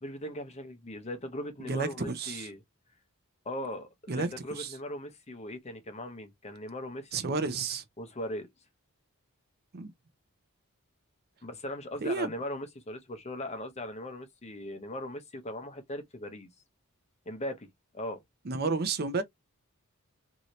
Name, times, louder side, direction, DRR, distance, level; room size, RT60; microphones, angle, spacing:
voice 1, 0.0-2.6 3.4-7.3 8.0-8.5 11.4-16.5 17.3-17.7 17.9-18.2, left 1 dB, 30° left, 0.8 m, -39 dB
voice 2, 1.6-2.5 4.1-4.3 4.6-4.7 7.1-7.8 9.7-9.9 12.0-12.3 18.5-19.2, right 4 dB, 45° right, 0.6 m, -31 dB
2.8 x 2.7 x 3.0 m
head